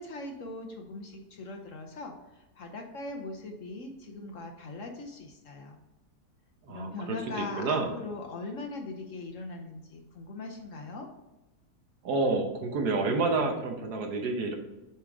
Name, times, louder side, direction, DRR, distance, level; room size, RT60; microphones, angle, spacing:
voice 1, 0.0-5.8 6.7-11.1, left 2 dB, 60° left, 2 dB, 1.0 m, -40 dB
voice 2, 6.7-7.9 12.0-14.6, right 3 dB, 70° right, 3 dB, 1.4 m, -29 dB
7.4 x 3.6 x 3.5 m, 1.0 s
omnidirectional pair, 1.8 m